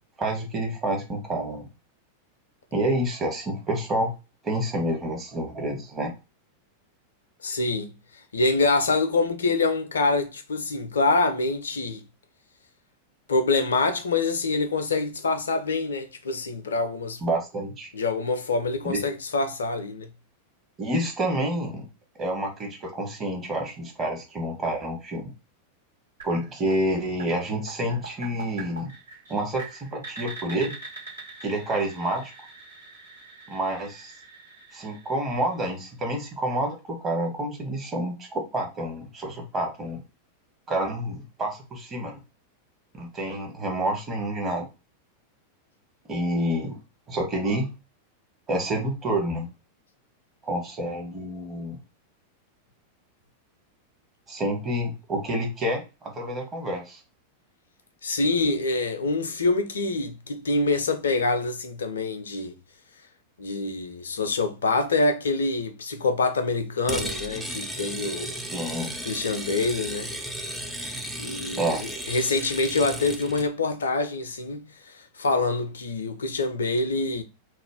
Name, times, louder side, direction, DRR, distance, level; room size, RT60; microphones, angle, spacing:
voice 1, 0.2-1.6 2.7-4.1 4.4-6.1 17.2-17.9 18.8-19.0 20.8-21.9 22.2-25.3 26.2-28.9 29.3-30.7 31.4-32.3 33.5-34.1 34.7-40.0 40.7-42.2 42.9-44.7 46.1-46.8 47.1-47.7 48.5-49.5 50.4-51.8 54.3-57.0 68.4-68.9 71.6-71.8, right 1 dB, 25° right, 0.9 m, -28 dB
voice 2, 7.4-7.9 8.3-12.0 13.3-17.2 17.9-20.1 58.0-62.5 63.4-68.3 69.0-70.1 71.2-77.2, left 3 dB, 70° left, 0.3 m, -25 dB
sound 1, 26.2-36.0, right 3 dB, 75° right, 1.3 m, -44 dB
sound 2, 66.9-73.5, right 1 dB, 5° right, 0.3 m, -34 dB
2.4 x 2.0 x 3.4 m
figure-of-eight pair, 90°, 0 cm